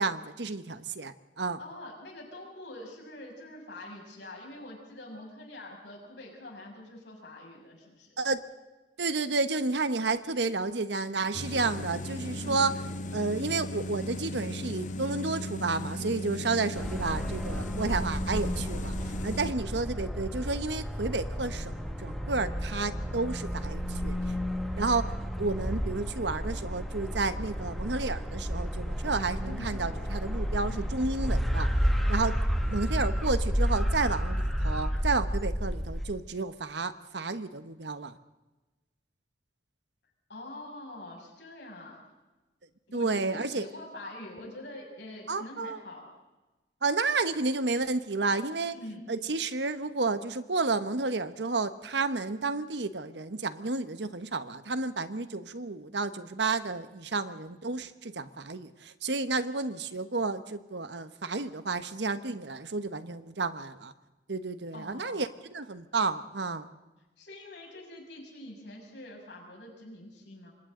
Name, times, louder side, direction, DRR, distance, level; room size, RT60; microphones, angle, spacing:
voice 1, 0.0-1.6 8.2-8.5 9.0-12.7 13.1-24.3 24.8-31.7 32.1-32.3 32.6-38.2 42.9-43.6 45.3-45.8 46.8-48.7 49.1-63.9 64.3-66.7, right 3 dB, 80° right, 11 dB, 1.2 m, -31 dB
voice 2, 1.6-8.1 12.4-12.7 29.4-29.8 30.7-30.9 40.3-42.0 42.9-46.1 48.7-49.0 64.7-65.2 67.2-70.5, left 1 dB, 80° left, -1 dB, 7.0 m, -45 dB
sound 1, 11.3-19.5, left 1 dB, 45° left, 0.9 m, -37 dB
sound 2, 16.8-36.1, equal, ahead, 2.2 m, -31 dB
28.0 x 25.0 x 3.9 m, 1.1 s
head